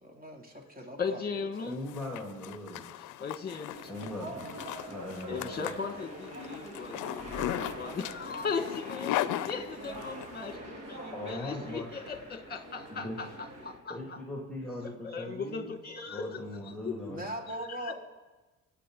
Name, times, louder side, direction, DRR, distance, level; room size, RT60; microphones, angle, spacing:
voice 1, 0.0-1.2 1.6-1.7 17.1-17.9, right 1 dB, 30° right, 2.9 m, -40 dB
voice 2, 1.0-1.7 3.2-3.8 5.3-14.2 14.8-17.1 17.7-17.9, left 5 dB, 30° left, 1.7 m, -38 dB
Zipper (clothing), 1.6-10.3, left 14 dB, 90° left, 0.5 m, -37 dB
voice 3, 1.7-2.9 3.9-4.5 4.9-5.6 11.1-11.9 12.9-13.2 13.9-15.7 16.1-17.2, left 1 dB, 5° left, 2.5 m, -39 dB
sound 1, 3.7-13.8, right 1 dB, 55° right, 2.9 m, -44 dB
25.0 x 8.6 x 3.9 m
cardioid pair, 90°, 30 cm